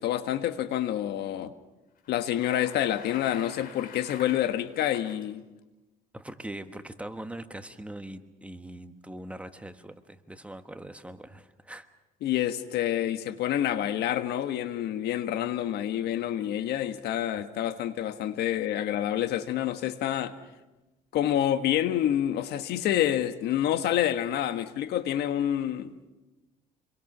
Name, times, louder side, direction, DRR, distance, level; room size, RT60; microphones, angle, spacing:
voice 1, 0.0-1.5 2.1-5.4 12.2-20.4 21.1-26.0, left 11 dB, 75° left, 1.4 m, -28 dB
Bicycle, 2.0-5.2, left 6 dB, 60° left, 5.0 m, -47 dB
voice 2, 6.1-11.9, right 1 dB, 5° right, 1.3 m, -42 dB
28.0 x 22.5 x 6.1 m
cardioid pair, 110°, 17 cm